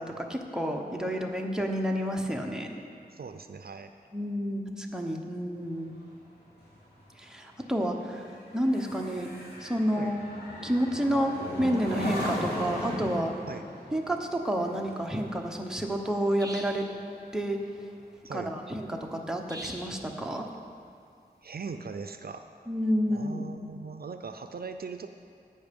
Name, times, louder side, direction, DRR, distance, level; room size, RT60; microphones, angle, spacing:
voice 1, 0.0-2.7 4.1-5.9 7.1-9.3 9.6-10.3 10.6-13.3 13.9-16.9 17.3-17.6 18.3-20.5 22.7-23.4, equal, 5° right, 1 dB, 1.0 m, -30 dB
voice 2, 3.1-3.9 10.0-10.1 13.5-13.6 18.2-18.5 21.4-22.4 23.1-25.1, right 5 dB, 65° right, 7 dB, 0.5 m, -40 dB
sound 1, 5.6-17.3 17.7-18.0, equal, 75° left, 2.9 m, -38 dB
sound 2, 16.4-16.9 19.5-20.0, right 1 dB, 20° right, 1.3 m, -41 dB
16.5 x 5.6 x 5.3 m, 2.4 s
wide cardioid pair, 75°, 17 cm